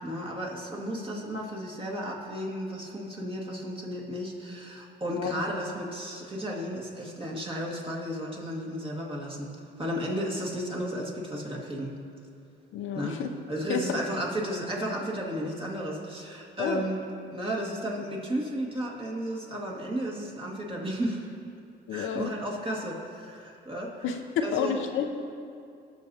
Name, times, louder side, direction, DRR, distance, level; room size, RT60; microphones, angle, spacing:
voice 1, 0.0-9.5 9.8-12.0 12.9-13.2 13.5-17.0 17.3-21.3 21.9-24.1 24.4-24.8, equal, 25° right, -2 dB, 1.8 m, -33 dB
voice 2, 12.7-13.3 13.7-14.0 16.6-16.8 21.9-22.3 24.0-25.2, left 7 dB, 80° left, 5 dB, 0.6 m, -30 dB
18.0 x 6.0 x 2.8 m, 2.5 s
cardioid pair, 90°, 20 cm